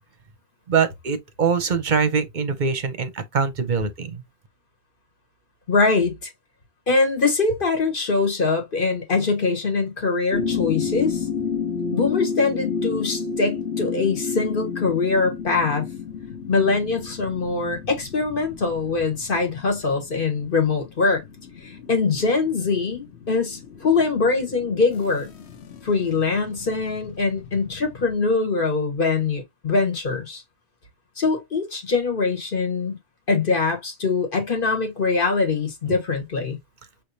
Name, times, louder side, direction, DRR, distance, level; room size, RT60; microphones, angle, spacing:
voice 1, 0.7-4.2, right 5 dB, 50° right, 0.7 m, -23 dB
voice 2, 5.7-6.3 6.9-11.3 11.9-15.8 16.5-21.2 21.6-25.3 25.8-30.4 31.2-33.0 33.3-36.6, left 4 dB, 50° left, 1.5 m, -23 dB
sound 1, 10.3-28.1, left 6 dB, 70° left, 1.0 m, -31 dB
5.7 x 3.3 x 2.7 m
omnidirectional pair, 1.2 m